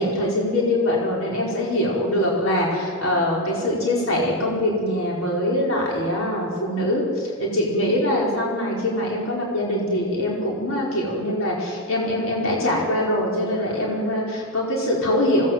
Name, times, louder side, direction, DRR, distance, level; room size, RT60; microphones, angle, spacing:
voice 1, 0.0-15.5, left 1 dB, 65° left, -3 dB, 5.1 m, -23 dB
26.5 x 19.0 x 7.7 m, 2.2 s
head